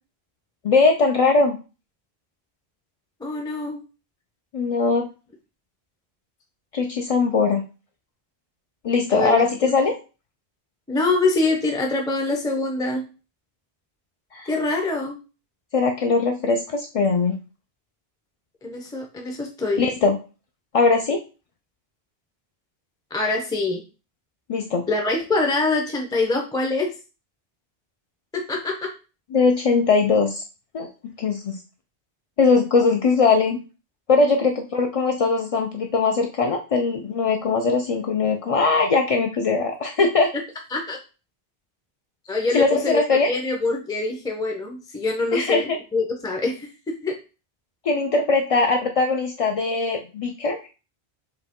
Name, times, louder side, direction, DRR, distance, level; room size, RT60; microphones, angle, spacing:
voice 1, 0.6-1.6 4.5-5.1 6.7-7.6 8.8-9.9 14.3-14.5 15.7-17.4 19.8-20.2 20.7-21.2 24.5-24.8 29.3-30.4 30.7-31.6 32.4-33.6 34.1-40.3 42.5-43.3 45.3-45.8 47.8-50.7, left 4 dB, 50° left, 3 dB, 0.4 m, -20 dB
voice 2, 3.2-3.8 9.1-9.7 10.9-13.0 14.5-15.2 18.6-19.9 23.1-23.8 24.9-26.9 28.3-28.9 40.7-41.0 42.3-46.7 47.0-47.2, left 3 dB, 5° left, 2 dB, 0.5 m, -24 dB
4.8 x 2.9 x 3.6 m, 0.33 s
omnidirectional pair, 1.1 m